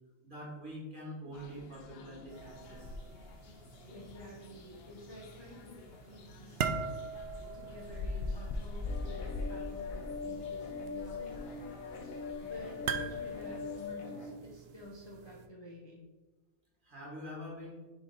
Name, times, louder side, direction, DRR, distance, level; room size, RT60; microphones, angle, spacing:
voice 1, 0.2-2.9 16.8-17.8, equal, 35° right, -4 dB, 1.9 m, -45 dB
sound 1, 1.3-13.9, left 3 dB, 60° left, 0.7 m, -44 dB
sound 2, 2.3-15.5, right 6 dB, 65° right, 0.6 m, -44 dB
voice 2, 3.9-6.8 7.5-11.4 12.4-16.0, equal, 25° left, -3 dB, 0.7 m, -50 dB
sound 3, 8.9-14.3, left 5 dB, 75° left, 1.4 m, -41 dB
6.4 x 4.0 x 4.0 m, 1.2 s
omnidirectional pair, 1.4 m